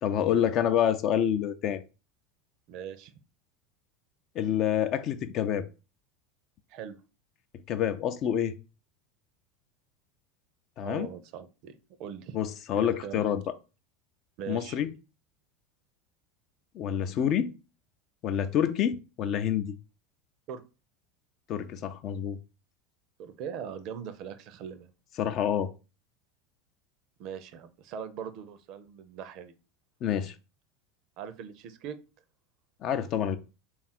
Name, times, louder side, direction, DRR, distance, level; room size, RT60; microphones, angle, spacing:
voice 1, 0.0-1.8 4.4-5.7 7.7-8.5 10.8-11.1 12.3-13.5 14.5-14.9 16.7-17.5 18.2-19.8 21.5-22.4 25.2-25.7 30.0-30.3 32.8-33.4, left 9 dB, 45° left, 0.4 m, -27 dB
voice 2, 2.7-3.1 6.7-7.0 10.8-12.4 12.7-13.3 14.4-14.8 20.5-20.6 23.2-24.9 27.2-29.5 31.2-32.0, right 8 dB, 50° right, 0.5 m, -40 dB
3.5 x 2.4 x 4.2 m
figure-of-eight pair, 80°, 0 cm